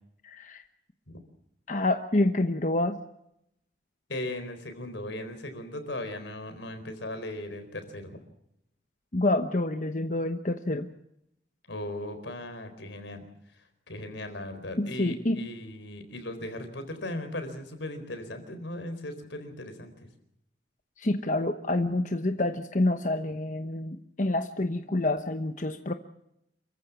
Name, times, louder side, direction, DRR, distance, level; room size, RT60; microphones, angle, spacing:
voice 1, 0.2-0.6 1.7-3.0 9.1-10.9 14.8-15.4 21.0-25.9, left 2 dB, 45° left, 7 dB, 1.0 m, -27 dB
voice 2, 4.1-8.1 11.7-13.2 13.9-19.9 23.3-23.4, left 1 dB, 85° left, 8 dB, 4.2 m, -38 dB
27.5 x 15.0 x 7.2 m, 0.81 s
head